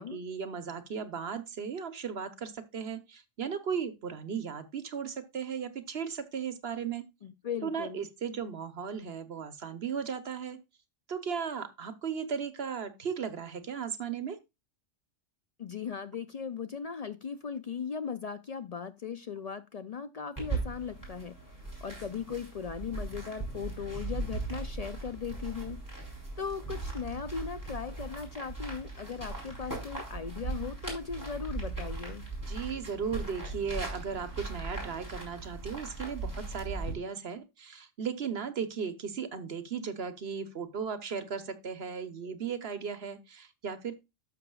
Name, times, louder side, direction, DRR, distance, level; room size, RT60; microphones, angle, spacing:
voice 1, 0.0-7.0 7.6-10.6 11.1-14.4 32.5-44.0, right 6 dB, 55° right, 1.1 m, -36 dB
voice 2, 7.2-8.1 15.6-21.3 21.8-25.8 26.1-32.2, left 6 dB, 70° left, 0.3 m, -38 dB
sound 1, 20.4-36.9, right 3 dB, 15° left, 3.6 m, -39 dB
11.5 x 6.8 x 2.3 m
omnidirectional pair, 1.3 m